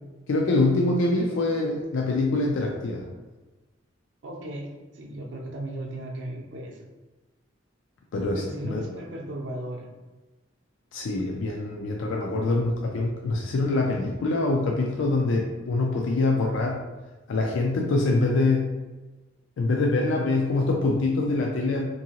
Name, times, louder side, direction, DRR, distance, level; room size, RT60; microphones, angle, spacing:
voice 1, 0.3-3.1 8.1-8.8 10.9-16.8 17.3-18.7 19.6-21.9, left 2 dB, 75° left, 0 dB, 0.4 m, -24 dB
voice 2, 4.2-6.8 8.3-9.9, right 1 dB, 65° right, 0 dB, 0.5 m, -36 dB
2.7 x 2.6 x 2.8 m, 1.2 s
head